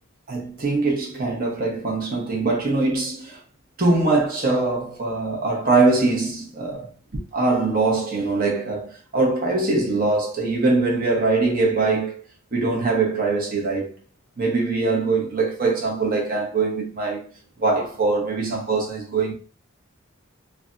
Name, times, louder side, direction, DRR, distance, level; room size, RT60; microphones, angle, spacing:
voice 1, 0.3-3.4 3.8-6.9 7.3-12.2 12.5-13.9 14.4-17.3 17.6-19.3, right 3 dB, 45° right, 0.9 m, -22 dB
3.3 x 2.3 x 2.5 m
head